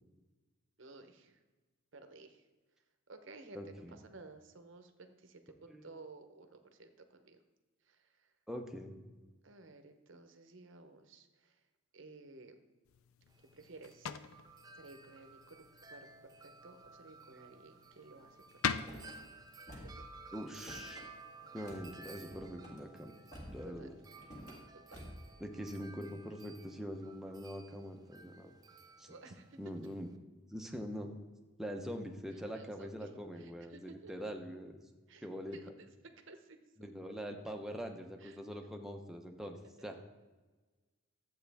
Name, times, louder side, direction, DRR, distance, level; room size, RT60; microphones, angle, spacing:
voice 1, 0.8-1.4 1.9-2.4 3.1-7.4 7.8-8.3 9.4-11.6 11.9-12.6 13.5-14.1 14.7-19.3 19.7-20.0 21.6-21.7 23.8-23.9 24.9-25.0 29.1-29.6 32.3-33.1 33.4-34.1 35.1-36.6 38.2-38.4, right 3 dB, 60° right, 7 dB, 0.8 m, -55 dB
voice 2, 3.5-4.0 5.7-5.8 8.5-9.0 20.3-21.0 21.5-23.1 23.5-23.9 25.4-28.5 29.0-29.1 29.6-30.1 30.5-31.1 31.6-34.8 35.2-35.6 36.8-40.0, equal, ahead, 2 dB, 0.7 m, -43 dB
untitled toilet seat, 12.8-22.0, left 7 dB, 75° left, 0.4 m, -45 dB
Wind chime, 13.3-30.2, right 3 dB, 15° right, 0.3 m, -56 dB
Car / Slam, 18.7-19.2 19.7-20.1 20.4-21.1 21.7-21.9 22.3-22.8 23.3-23.7 24.2-24.6 24.9-25.3, equal, 35° left, 1.8 m, -50 dB
12.5 x 7.9 x 3.5 m, 1.3 s
head